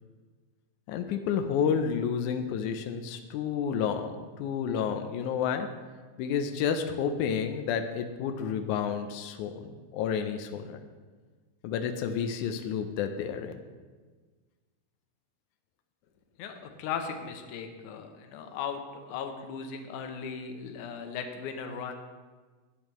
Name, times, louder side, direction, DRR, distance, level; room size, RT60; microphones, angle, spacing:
voice 1, 0.9-5.7 6.2-10.8 11.6-13.6, left 7 dB, 90° left, 7 dB, 1.7 m, -30 dB
voice 2, 16.4-18.8 19.1-21.9, left 6 dB, 75° left, 5 dB, 2.0 m, -37 dB
14.0 x 8.4 x 3.1 m, 1.4 s
omnidirectional pair, 4.3 m